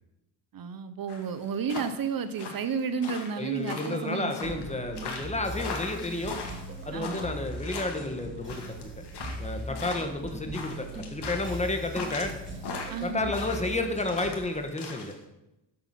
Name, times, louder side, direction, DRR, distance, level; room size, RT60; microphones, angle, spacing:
voice 1, 0.5-4.6 6.9-7.3 12.9-13.3, right 6 dB, 50° right, 12 dB, 0.7 m, -32 dB
sound 1, 1.1-15.1, left 4 dB, 60° left, 2.2 m, -40 dB
voice 2, 3.4-6.4 6.8-8.9 9.4-12.3 13.0-15.1, left 2 dB, 15° left, 5 dB, 1.4 m, -31 dB
sound 2, 4.4-14.4, equal, 25° right, 2.0 m, -40 dB
12.0 x 7.7 x 5.9 m, 0.93 s
cardioid pair, 150°, 45 cm